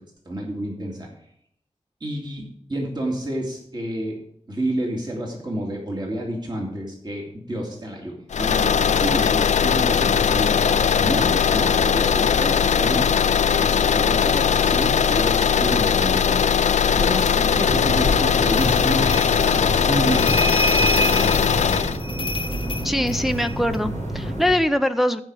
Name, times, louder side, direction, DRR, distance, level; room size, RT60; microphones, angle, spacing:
voice 1, 0.3-1.1 2.0-4.2 4.5-13.1 13.6-16.4 16.9-19.2 19.5-20.4 21.0-21.3, right 1 dB, 35° right, -1 dB, 2.4 m, -29 dB
sound 1, 8.3-22.0, left 7 dB, 75° left, 0.4 m, -19 dB
sound 2, 17.5-24.5, right 1 dB, 80° right, 4.1 m, -29 dB
sound 3, 18.5-23.8, equal, 45° left, 0.8 m, -28 dB
voice 2, 22.8-25.2, left 1 dB, ahead, 8 dB, 0.5 m, -22 dB
14.0 x 5.5 x 4.8 m, 0.71 s
wide cardioid pair, 75°, 12 cm